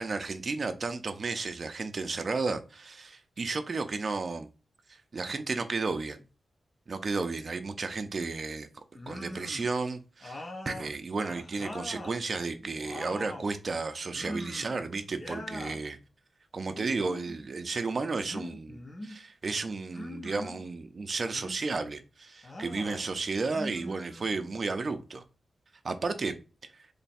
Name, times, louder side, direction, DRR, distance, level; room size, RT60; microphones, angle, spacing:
voice 1, 0.0-4.5 5.1-6.2 6.9-8.7 9.1-16.0 16.5-25.2 25.8-26.3, right 3 dB, 45° right, 0.5 m, -33 dB
sound 1, 8.9-9.7 10.2-12.2 12.6-13.5 14.1-14.8 15.1-15.8 16.6-17.4 18.3-19.2 19.9-20.6 21.3-21.9 22.4-23.0 23.4-24.5, left 1 dB, 30° left, 0.7 m, -42 dB
3.2 x 2.3 x 4.1 m
wide cardioid pair, 110°, 0 cm